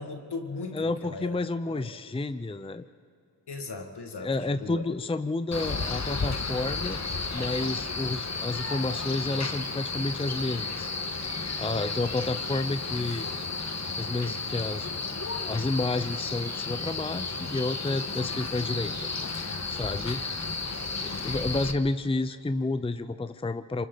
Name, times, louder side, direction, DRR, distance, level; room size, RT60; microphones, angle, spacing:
voice 1, 0.0-1.4 1.7-1.9 3.5-4.3 4.6-4.8, left 3 dB, 65° left, 4 dB, 2.3 m, -37 dB
voice 2, 0.7-2.8 4.2-7.0 7.3-10.9 11.6-13.3 14.0-14.9 15.5-18.9 19.7-20.2 21.0-23.9, left 2 dB, 15° left, 11 dB, 0.7 m, -30 dB
Male speech man speaking, 5.5-21.7, left 3 dB, 40° left, 1.6 m, -33 dB
27.5 x 24.0 x 4.1 m, 2.3 s
cardioid pair, 50°, 42 cm